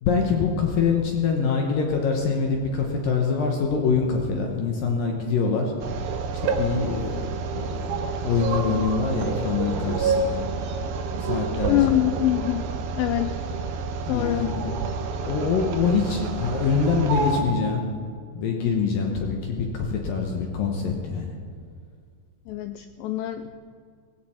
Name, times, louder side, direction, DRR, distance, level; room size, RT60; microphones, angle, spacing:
voice 1, 0.0-5.7 6.6-10.4 11.2-11.9 14.1-14.8 15.2-17.9 18.3-21.4, left 5 dB, 70° left, 1 dB, 2.6 m, -25 dB
sound 1, 5.8-17.4, right 4 dB, 75° right, 2.8 m, -28 dB
voice 2, 11.7-12.7 12.9-13.4 14.1-14.5 22.5-23.5, left 14 dB, 85° left, 9 dB, 2.0 m, -24 dB
17.5 x 16.5 x 4.4 m, 2.1 s
omnidirectional pair, 4.6 m